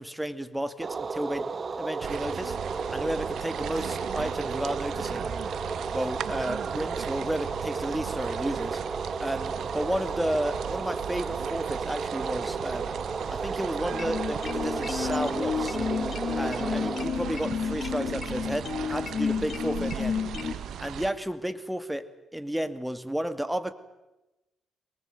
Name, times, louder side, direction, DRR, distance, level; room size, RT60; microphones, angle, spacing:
voice 1, 0.0-1.5 1.8-5.3 5.9-8.8 9.2-13.0 13.3-15.8 16.3-20.2 20.8-23.7, right 1 dB, 5° right, 12 dB, 2.3 m, -32 dB
sound 1, 0.8-17.0, right 4 dB, 45° right, 1.3 m, -33 dB
sound 2, 2.0-21.1, right 9 dB, 70° right, 1.5 m, -37 dB
sound 3, 13.9-20.5, left 7 dB, 55° left, 1.6 m, -31 dB
23.5 x 19.5 x 9.4 m, 1.0 s
supercardioid pair, 50°, 0 cm